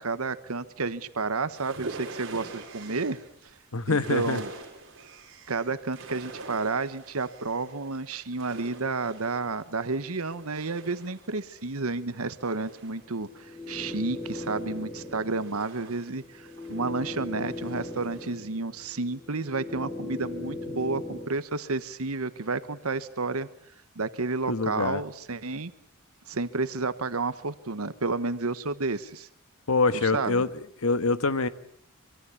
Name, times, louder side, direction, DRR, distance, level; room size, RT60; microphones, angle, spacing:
voice 1, 0.0-3.5 3.9-4.5 5.5-23.5 23.9-25.7 26.3-29.3 29.9-30.4, right 3 dB, 85° right, 12 dB, 1.3 m, -31 dB
sound 1, 1.5-18.3, right 3 dB, 60° right, 5.4 m, -45 dB
voice 2, 3.7-4.4 24.5-25.0 29.7-30.5 30.8-31.5, left 3 dB, 80° left, 13 dB, 1.4 m, -25 dB
sound 2, 13.0-21.3, left 2 dB, 10° left, 3.2 m, -38 dB
24.5 x 24.0 x 8.5 m, 0.65 s
head